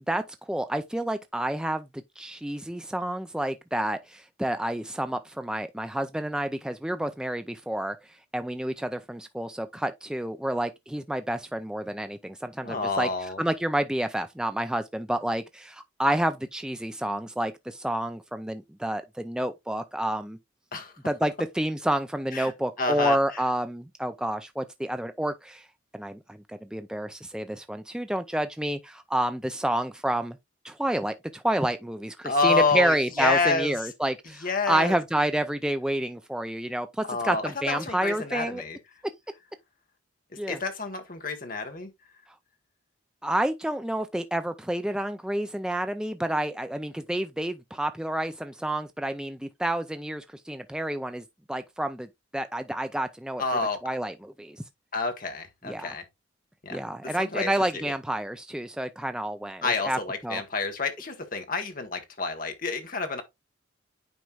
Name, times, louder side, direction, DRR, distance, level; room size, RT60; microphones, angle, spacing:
voice 1, 0.1-1.9 2.2-8.0 8.3-13.1 13.4-20.4 21.0-25.7 25.9-30.4 30.6-38.6 40.4-40.6 43.2-52.1 52.3-53.4 53.8-54.6 55.7-55.9 56.7-60.4, right 1 dB, 5° right, 0.3 m, -29 dB
voice 2, 12.6-13.4 20.7-20.9 22.3-22.5 22.8-23.4 32.2-33.7 34.4-35.0 37.1-38.8 40.5-41.9 53.4-53.8 54.9-56.0 56.6-56.8 57.2-57.5 59.6-63.2, left 4 dB, 40° left, 1.2 m, -28 dB
9.3 x 4.4 x 2.4 m
head